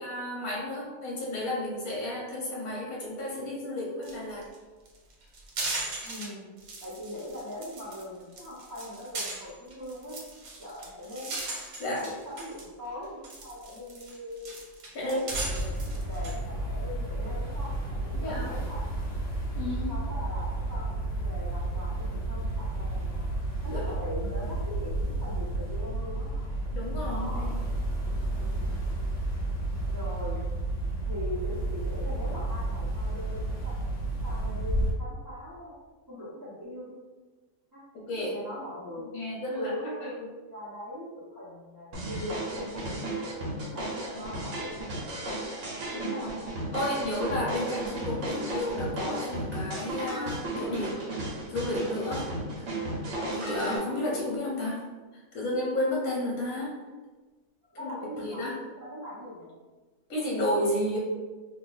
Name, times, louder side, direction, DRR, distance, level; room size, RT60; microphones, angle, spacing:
voice 1, 0.0-4.4 11.8-12.1 14.9-15.4 18.1-18.6 19.5-19.9 23.7-23.8 26.7-27.6 37.9-38.3 39.1-39.7 45.9-46.3 46.7-51.0 51.5-52.3 53.3-54.8 55.3-56.7 57.8-57.9 58.2-58.6 60.1-61.0, left 1 dB, 85° left, -3 dB, 1.2 m, -32 dB
sound 1, 4.0-4.1 4.4-4.6 4.9-6.2 6.6-8.0 8.3-12.6 13.0-16.4, right 2 dB, 90° right, 1.2 m, -38 dB
voice 2, 6.0-6.5 6.8-10.2 10.6-11.4 12.0-14.6 15.0-19.1 19.6-23.3 23.6-26.4 27.0-27.6 28.4-28.8 29.9-30.4 31.0-35.7 36.1-36.9 37.7-37.8 38.2-39.2 39.5-43.2 43.7-45.4 57.7-58.4 58.8-59.5, left 1 dB, 20° right, -10 dB, 0.6 m, -41 dB
sound 2, 15.3-34.9, right 2 dB, 65° left, 1.1 m, -31 dB
sound 3, 41.9-53.8, right 1 dB, 65° right, 1.0 m, -34 dB
2.6 x 2.3 x 3.8 m, 1.3 s
omnidirectional pair, 1.5 m